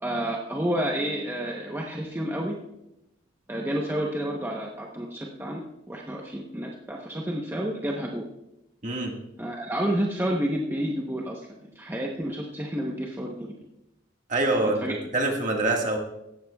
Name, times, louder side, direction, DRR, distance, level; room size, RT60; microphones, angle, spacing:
voice 1, 0.0-2.6 3.5-8.3 9.4-13.5 14.8-15.0, right 1 dB, 10° right, -1 dB, 0.9 m, -30 dB
voice 2, 8.8-9.1 14.3-14.8 15.1-16.0, right 2 dB, 40° right, 1 dB, 1.8 m, -24 dB
16.5 x 13.0 x 2.3 m, 0.86 s
head